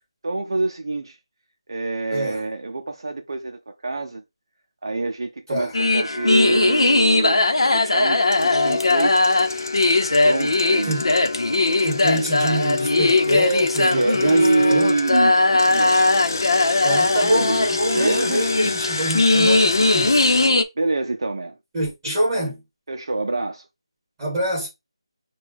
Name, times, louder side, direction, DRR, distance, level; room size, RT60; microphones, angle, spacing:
voice 1, 0.2-1.2 1.7-4.2 4.8-7.4 7.7-9.4 10.2-11.0 13.8-16.0 17.3-17.7 17.9-18.4 20.8-21.6 22.9-23.7, right 2 dB, 50° right, 0.6 m, -25 dB
voice 2, 2.1-2.4 5.5-5.7 10.8-11.1 11.8-14.9 16.8-20.3 21.7-22.6 24.2-24.7, right 1 dB, 10° right, 3.5 m, -25 dB
sound 1, 5.7-20.6, left 2 dB, 65° left, 0.8 m, -19 dB
Engine, 8.3-15.2 15.6-20.5, left 3 dB, 35° left, 0.5 m, -33 dB
6.2 x 2.3 x 3.5 m
figure-of-eight pair, 175°, 3 cm